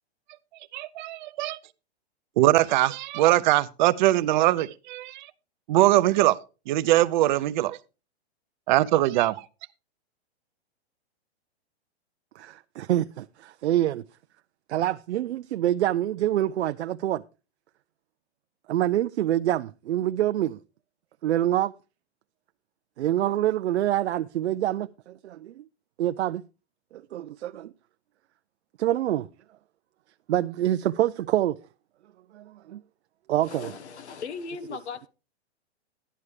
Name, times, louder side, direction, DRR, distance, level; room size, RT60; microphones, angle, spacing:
voice 1, 0.7-1.6 2.4-5.3 5.7-6.4 6.7-7.8 8.7-9.4, right 15 dB, 45° right, 0.6 m, -22 dB
voice 2, 12.4-14.0 14.7-17.2 18.7-20.6 21.2-21.7 23.0-25.6 26.0-26.4 26.9-27.7 28.8-29.3 30.3-31.6 32.3-32.8 33.3-33.8, right 13 dB, 85° right, 0.5 m, -26 dB
voice 3, 33.4-35.1, left 5 dB, 85° left, 1.3 m, -38 dB
11.5 x 11.0 x 3.2 m
hypercardioid pair, 140°, 33 cm